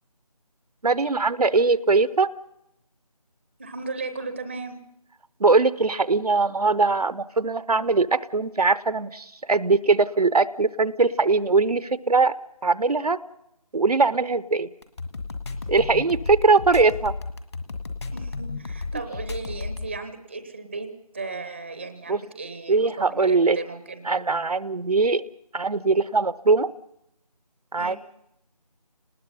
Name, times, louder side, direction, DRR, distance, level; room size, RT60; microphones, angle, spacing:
voice 1, 0.8-2.3 5.4-12.4 12.6-13.2 13.7-14.7 15.7-17.1 22.1-22.2 22.7-23.6 24.1-25.2 25.5-26.7 27.7-28.0, right 3 dB, 70° right, 16 dB, 0.8 m, -21 dB
voice 2, 3.6-4.8 18.1-20.9 21.1-24.1 27.8-28.0, right 3 dB, 15° right, 9 dB, 0.7 m, -35 dB
sound 1, 14.8-19.9, left 4 dB, 40° left, 1.9 m, -33 dB
29.0 x 19.5 x 5.5 m, 0.82 s
figure-of-eight pair, 165°, 20 cm